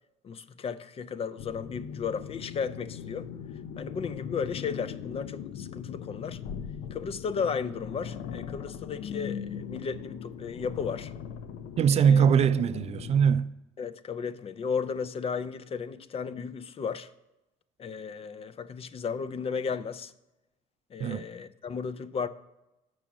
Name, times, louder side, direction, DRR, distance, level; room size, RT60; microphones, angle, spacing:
voice 1, 0.2-3.3 3.8-6.4 6.9-11.1 11.9-12.3 13.8-17.1 17.8-20.1 20.9-22.3, left 6 dB, 40° left, 0.5 m, -34 dB
sound 1, 1.4-13.3, left 8 dB, 80° left, 0.6 m, -39 dB
voice 2, 11.8-13.5 21.0-21.2, right 7 dB, 45° right, 0.4 m, -22 dB
6.1 x 6.0 x 7.1 m
supercardioid pair, 80°, 15 cm